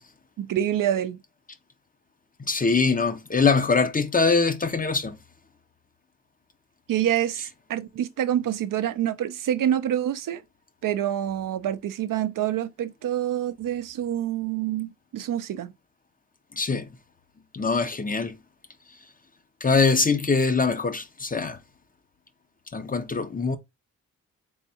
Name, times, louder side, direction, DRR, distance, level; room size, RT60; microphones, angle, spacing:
voice 1, 0.4-1.2 6.9-10.4 10.8-15.7, right 11 dB, 65° right, 0.5 m, -27 dB
voice 2, 2.5-5.1 16.6-16.9 17.5-18.3 19.6-21.6 22.7-23.6, left 4 dB, 25° left, 0.6 m, -23 dB
3.5 x 3.5 x 2.8 m
cardioid pair, 60°, 34 cm